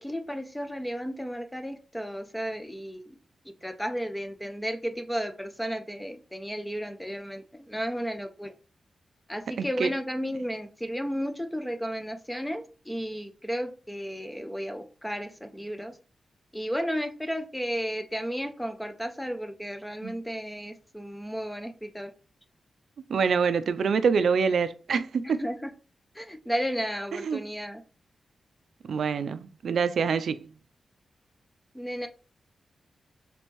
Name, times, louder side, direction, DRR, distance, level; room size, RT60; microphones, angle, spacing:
voice 1, 0.0-3.2 3.6-8.5 9.3-16.0 16.5-22.1 25.2-25.7 26.1-27.8 31.7-32.1, equal, 5° left, 0.4 m, -33 dB
voice 2, 9.6-9.9 20.0-20.1 23.1-25.4 27.1-27.4 28.9-30.5, right 5 dB, 70° right, 0.3 m, -26 dB
3.4 x 2.9 x 4.4 m
wide cardioid pair, 140°, 0 cm